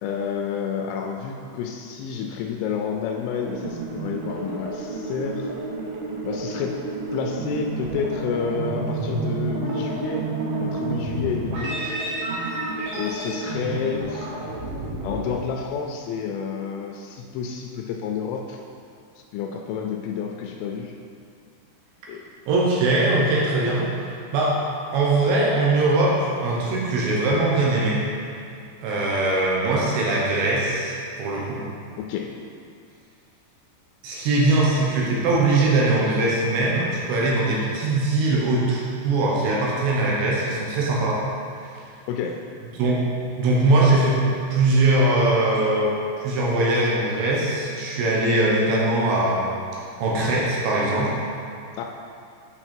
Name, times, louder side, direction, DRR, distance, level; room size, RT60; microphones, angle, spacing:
voice 1, 0.0-5.5 6.2-6.8 7.1-10.3 10.6-12.0 12.9-14.3 15.0-18.6 19.2-20.9 22.1-22.2 32.0-32.3 42.1-42.4 51.7-51.9, left 6 dB, 85° left, 2 dB, 3.0 m, -30 dB
sound 1, 3.4-15.3, right 2 dB, 90° right, 1.8 m, -30 dB
voice 2, 22.5-23.8 24.3-24.6 24.9-28.0 28.8-31.6 34.0-41.2 42.8-43.0 43.4-44.2 44.5-45.9 46.2-49.6 50.0-51.1, right 2 dB, 75° right, -5 dB, 3.0 m, -21 dB
9.0 x 4.4 x 4.4 m, 2.4 s
omnidirectional pair, 5.7 m